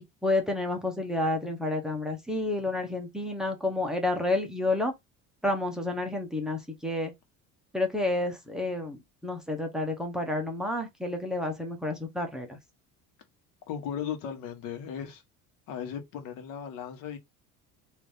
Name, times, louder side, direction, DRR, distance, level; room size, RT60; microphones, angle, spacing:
voice 1, 0.2-4.9 5.4-7.1 7.7-12.6, left 2 dB, ahead, 0.9 m, -30 dB
voice 2, 13.7-15.2 15.7-17.2, left 8 dB, 75° left, 1.3 m, -36 dB
3.9 x 2.8 x 3.4 m
cardioid pair, 145°, 33 cm